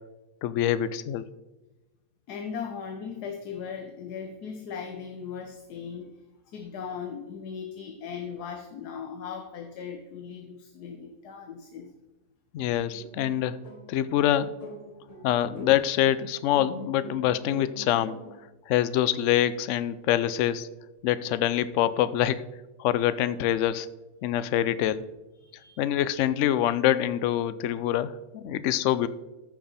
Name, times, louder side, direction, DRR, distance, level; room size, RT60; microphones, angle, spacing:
voice 1, 0.4-1.2 12.5-13.6 13.9-14.5 15.2-18.2 18.7-20.7 21.0-22.4 22.8-23.9 24.2-25.0 25.8-29.1, left 11 dB, 65° left, 15 dB, 0.8 m, -25 dB
voice 2, 2.3-6.1 6.5-11.9 14.9-15.3 25.4-25.8, left 6 dB, 85° left, 4 dB, 1.4 m, -38 dB
sound 1, 12.9-18.4, right 1 dB, 25° left, 2.1 m, -44 dB
14.0 x 6.0 x 4.1 m, 1.1 s
omnidirectional pair, 1.6 m